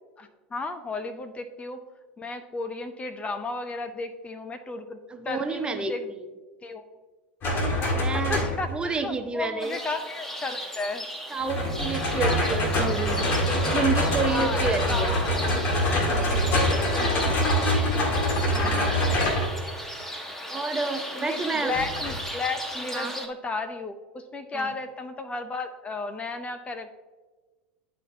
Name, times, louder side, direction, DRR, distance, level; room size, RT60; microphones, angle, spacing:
voice 1, 0.2-1.8 2.2-5.0 5.2-6.1 6.6-6.8 7.8-11.1 12.2-12.4 14.3-15.2 15.5-15.6 16.3-18.2 21.1-27.0, left 3 dB, 20° left, 8 dB, 0.6 m, -34 dB
voice 2, 5.1-6.3 8.0-8.4 8.7-9.8 11.3-13.3 13.6-15.1 18.5-19.0 20.5-21.7 22.9-23.1 24.5-24.7, right 4 dB, 15° right, 6 dB, 0.7 m, -30 dB
sound 1, 7.4-8.8 11.5-19.5 21.7-22.2, left 1 dB, 40° left, 1.8 m, -25 dB
Alanis - Town Hall Square - Plaza del Ayuntamiento, 9.6-23.3, equal, 5° left, 1.0 m, -36 dB
11.0 x 4.2 x 2.7 m, 1.3 s
hypercardioid pair, 85°, 6 cm